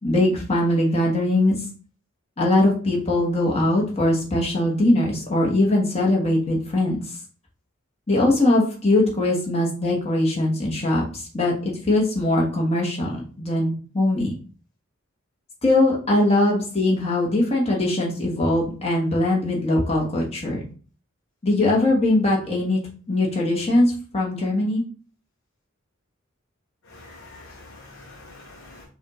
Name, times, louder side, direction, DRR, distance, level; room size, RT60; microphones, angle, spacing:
voice 1, 0.0-1.6 2.4-7.2 8.1-14.3 15.6-20.6 21.4-22.8 23.1-24.8, left 1 dB, 30° left, -3 dB, 1.2 m, -21 dB
voice 2, 26.9-28.8, left 2 dB, 65° left, 0 dB, 0.8 m, -45 dB
5.4 x 2.4 x 3.0 m, 0.39 s
head